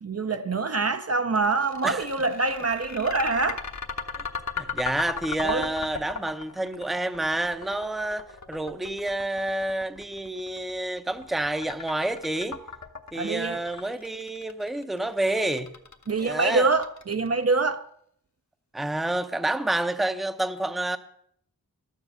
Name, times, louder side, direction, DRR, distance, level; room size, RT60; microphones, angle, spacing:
voice 1, 0.0-3.6 5.4-5.7 13.1-13.6 16.1-17.9, right 3 dB, 40° right, 0.6 m, -25 dB
sound 1, 1.3-17.5, left 5 dB, 50° left, 1.1 m, -37 dB
voice 2, 4.6-12.6 13.1-15.7 16.2-16.7 18.7-21.0, right 1 dB, ahead, 0.7 m, -29 dB
12.0 x 7.4 x 7.8 m
wide cardioid pair, 90°, 37 cm